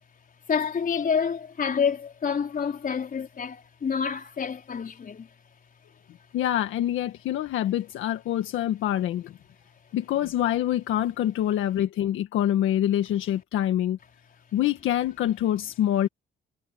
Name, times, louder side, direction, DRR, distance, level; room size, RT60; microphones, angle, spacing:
voice 1, 0.5-5.3, left 6 dB, 45° left, 4.8 m, -28 dB
voice 2, 6.3-9.3 9.9-14.0 14.5-16.1, left 12 dB, 85° left, 1.7 m, -25 dB
cardioid pair, 90°, 20 cm